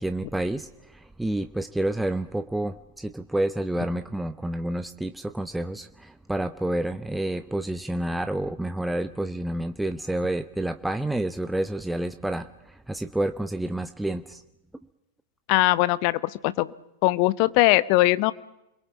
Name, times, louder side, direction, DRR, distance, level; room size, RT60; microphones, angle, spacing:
voice 1, 0.0-14.4, right 1 dB, 5° right, 9 dB, 0.9 m, -29 dB
voice 2, 15.5-16.7 17.0-18.3, left 18 dB, 45° left, 17 dB, 0.9 m, -21 dB
29.0 x 22.0 x 7.4 m, 0.89 s
figure-of-eight pair, 90°, 0 cm